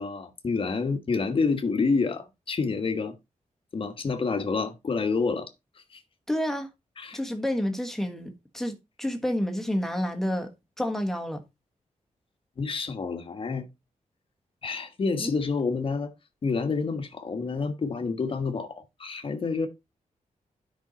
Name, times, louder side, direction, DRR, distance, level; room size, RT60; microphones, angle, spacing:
voice 1, 0.0-3.1 3.7-5.5 5.9-6.0 7.0-7.2 12.6-13.6 14.6-16.1 16.4-19.7, left 4 dB, 40° left, 1.3 m, -28 dB
voice 2, 6.3-6.7 7.1-10.5 10.8-11.4 15.2-15.3, equal, 5° left, 1.5 m, -29 dB
10.0 x 5.5 x 4.1 m
wide cardioid pair, 175°, 13 cm